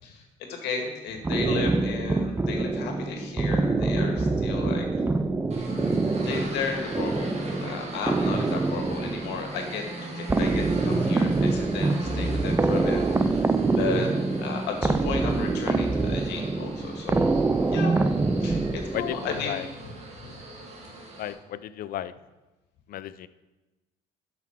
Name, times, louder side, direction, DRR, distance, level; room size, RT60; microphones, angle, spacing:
voice 1, 0.0-5.1 6.2-13.5 13.8-14.1 14.4-17.2 17.7-18.0 18.4-19.9 20.2-20.3, left 5 dB, 85° left, 3 dB, 1.9 m, -34 dB
sound 1, 1.2-19.4, right 3 dB, 15° right, 0.5 m, -25 dB
sound 2, 5.5-21.3, right 1 dB, 40° right, 1.9 m, -39 dB
voice 2, 18.9-19.7 21.2-22.1 22.9-23.3, left 12 dB, 60° left, 15 dB, 0.5 m, -34 dB
12.0 x 6.0 x 4.5 m, 1.1 s
cardioid pair, 110°, 17 cm